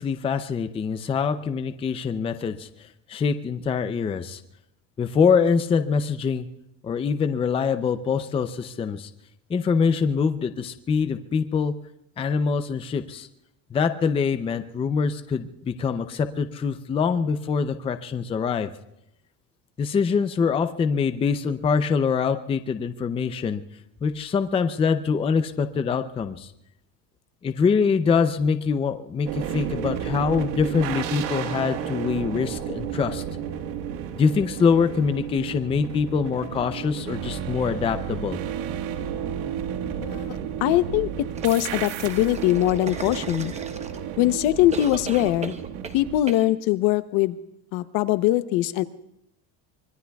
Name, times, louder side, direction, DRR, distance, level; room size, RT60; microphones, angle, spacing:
voice 1, 0.0-4.4 5.0-6.5 6.8-9.1 9.5-11.8 12.2-13.3 13.7-18.7 19.8-23.6 24.0-26.5 27.4-33.2 34.2-38.4, left 5 dB, 15° left, 10 dB, 0.5 m, -24 dB
sound 1, 29.3-46.2, right 9 dB, 80° right, 1.6 m, -32 dB
voice 2, 40.0-41.1 41.4-43.5 44.2-45.5 45.9-47.4 47.7-48.8, left 15 dB, 65° left, 13 dB, 0.9 m, -22 dB
sound 2, 41.4-44.2 44.7-46.0 46.3-46.4, right 4 dB, 15° right, 0.9 m, -37 dB
25.0 x 22.0 x 2.3 m, 0.81 s
cardioid pair, 150°, 41 cm